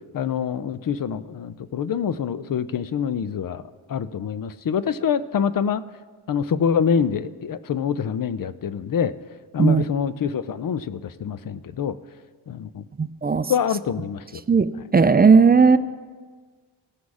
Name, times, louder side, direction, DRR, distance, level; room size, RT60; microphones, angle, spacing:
voice 1, 0.1-3.6 3.9-5.8 6.3-9.1 9.5-12.0 12.5-12.8 13.5-14.4, left 7 dB, 45° left, 15 dB, 0.5 m, -25 dB
voice 2, 13.0-13.5 14.5-15.8, right 5 dB, 20° right, 12 dB, 0.3 m, -16 dB
16.5 x 6.2 x 4.8 m, 1.5 s
wide cardioid pair, 80°, 49 cm